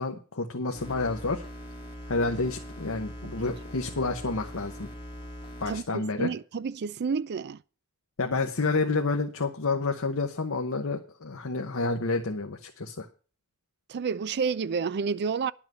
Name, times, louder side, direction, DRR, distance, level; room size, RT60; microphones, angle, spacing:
voice 1, 0.0-1.4 2.1-4.9 5.6-6.3 8.2-13.1, left 3 dB, 70° left, 1.0 m, -29 dB
sound 1, 0.7-5.8, equal, 25° left, 3.1 m, -41 dB
voice 2, 5.7-7.6 13.9-15.5, right 5 dB, 50° right, 0.4 m, -30 dB
11.0 x 5.9 x 7.5 m
head